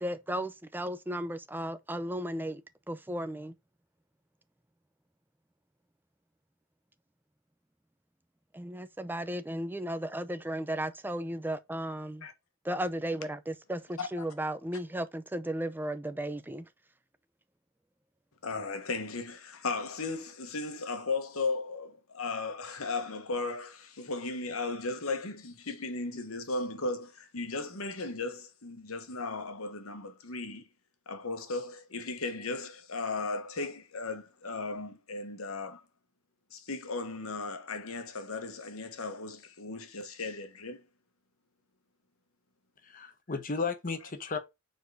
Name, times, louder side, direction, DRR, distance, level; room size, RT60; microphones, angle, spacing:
voice 1, 0.0-2.6 2.9-3.5 8.5-12.3 12.6-16.7, right 1 dB, 10° right, 0.5 m, -35 dB
voice 2, 18.4-30.6 31.1-35.8 36.5-40.8, left 3 dB, 85° left, 1.3 m, -36 dB
voice 3, 42.8-44.4, left 4 dB, 40° left, 1.0 m, -34 dB
4.7 x 4.6 x 4.8 m
head